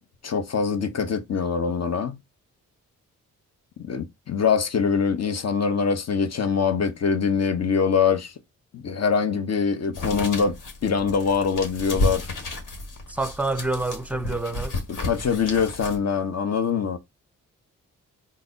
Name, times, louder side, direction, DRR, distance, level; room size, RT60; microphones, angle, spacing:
voice 1, 0.2-2.2 3.9-8.3 8.7-10.6 10.8-12.2 15.0-17.0, left 6 dB, 45° left, 0.8 m, -23 dB
sound 1, 9.9-16.0, left 2 dB, 60° left, 1.4 m, -31 dB
voice 2, 13.1-14.8, right 2 dB, 5° right, 0.6 m, -27 dB
3.9 x 2.1 x 3.8 m
supercardioid pair, 50°, 35 cm